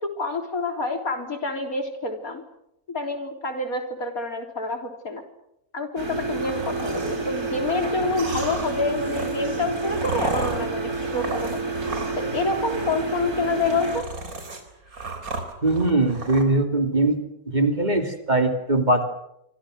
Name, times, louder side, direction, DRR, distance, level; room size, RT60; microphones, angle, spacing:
voice 1, 0.0-2.4 2.9-5.2 5.7-11.8 12.2-14.1, left 3 dB, 70° left, 4 dB, 4.2 m, -28 dB
sound 1, 6.0-14.0, right 3 dB, 90° right, 4.6 m, -29 dB
sound 2, 6.3-7.2 8.0-12.3 12.6-13.0 13.5-16.4, right 2 dB, 70° right, 4.3 m, -34 dB
voice 2, 15.6-17.2 17.5-19.0, right 2 dB, 30° right, 5 dB, 2.8 m, -21 dB
26.5 x 26.0 x 6.5 m, 0.79 s
omnidirectional pair, 1.6 m